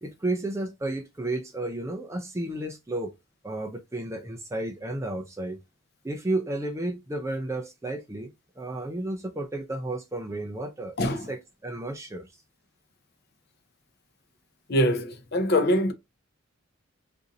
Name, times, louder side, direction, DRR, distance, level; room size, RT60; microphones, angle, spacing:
voice 1, 0.0-3.1 3.4-5.6 6.0-12.3, right 2 dB, 15° right, 0.3 m, -32 dB
voice 2, 14.7-15.9, left 1 dB, 45° left, 0.5 m, -23 dB
2.6 x 2.5 x 3.8 m
head